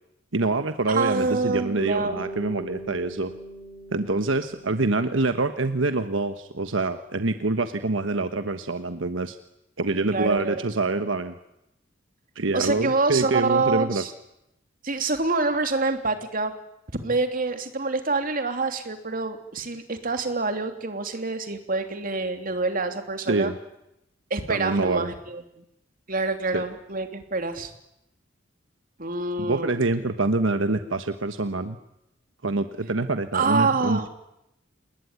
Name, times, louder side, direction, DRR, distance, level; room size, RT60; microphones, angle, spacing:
voice 1, 0.3-3.3 3.9-9.4 9.8-11.4 12.3-14.0 23.3-23.6 24.5-25.1 26.5-26.6 29.4-31.8 32.4-34.1, right 3 dB, 80° right, 9 dB, 1.3 m, -25 dB
voice 2, 0.9-2.2 10.1-10.6 12.5-14.1 14.8-16.5 17.0-23.5 24.3-25.6 26.1-27.7 29.0-29.7 33.3-34.1, right 3 dB, 45° right, 6 dB, 3.0 m, -26 dB
Bass guitar, 1.8-6.1, right 1 dB, 25° left, 5.9 m, -40 dB
28.5 x 20.0 x 9.7 m, 0.84 s
head